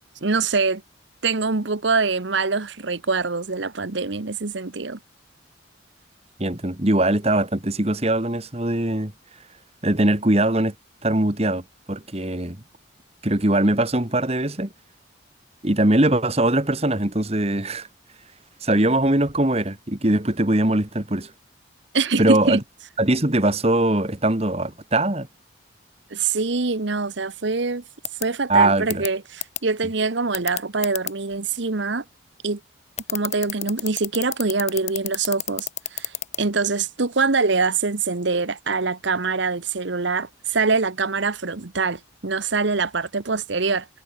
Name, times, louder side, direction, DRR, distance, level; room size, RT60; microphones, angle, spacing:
voice 1, 0.2-0.8 1.2-5.0 21.9-22.6 26.1-27.8 28.2-32.0 32.4-32.6 33.1-43.9, right 4 dB, 65° right, 1.1 m, -24 dB
voice 2, 6.4-9.1 9.8-10.7 11.0-11.6 11.9-12.6 13.2-14.7 15.6-17.9 18.6-21.3 22.2-22.6 23.0-25.3 28.5-29.0, right 1 dB, 30° right, 1.8 m, -21 dB
sound 1, 28.1-28.2 28.9-29.1 29.4-29.6 30.3-31.1 33.0-36.4, left 12 dB, 35° left, 4.4 m, -28 dB
head